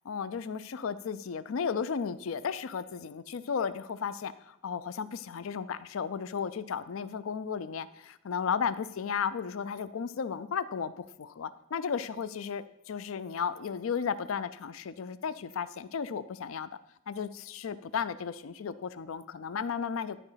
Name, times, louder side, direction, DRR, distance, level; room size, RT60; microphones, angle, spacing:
voice 1, 0.1-16.7 17.1-20.2, left 6 dB, 90° left, 15 dB, 0.4 m, -34 dB
11.0 x 5.0 x 5.7 m, 0.81 s
head